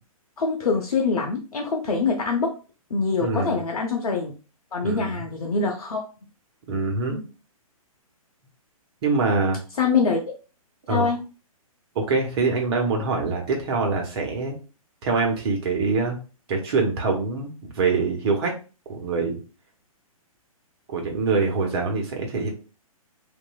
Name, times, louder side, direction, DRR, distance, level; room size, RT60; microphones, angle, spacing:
voice 1, 0.4-2.5 2.9-4.3 4.7-6.0 9.8-10.2 10.9-11.2, left 4 dB, 85° left, 0 dB, 0.7 m, -24 dB
voice 2, 3.2-3.6 4.8-5.2 6.7-7.2 9.0-9.6 10.9-11.1 11.9-14.6 15.0-16.2 16.5-18.5 18.9-19.4 20.9-22.5, right 4 dB, 45° right, 2 dB, 1.0 m, -24 dB
3.0 x 2.6 x 2.3 m, 0.33 s
hypercardioid pair, 135°, 19 cm